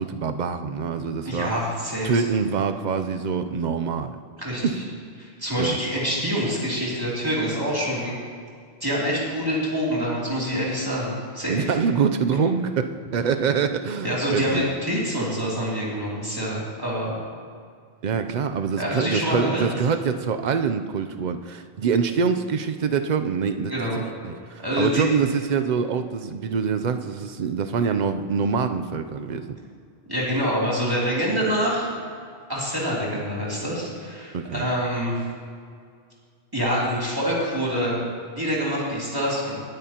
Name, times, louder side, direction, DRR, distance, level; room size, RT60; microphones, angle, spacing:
voice 1, 0.0-1.5 2.0-4.2 4.6-4.8 5.6-5.8 11.5-14.7 18.0-29.5 34.3-34.7, right 6 dB, 50° right, 8 dB, 0.6 m, -25 dB
voice 2, 1.3-2.2 4.4-4.7 5.2-8.1 8.8-11.7 14.0-17.2 18.8-19.7 23.7-24.0 24.6-25.0 30.1-31.9 32.5-35.2 36.5-38.0 38.3-39.6, equal, 20° right, -6 dB, 2.8 m, -26 dB
19.5 x 9.0 x 2.9 m, 2.2 s
omnidirectional pair, 1.2 m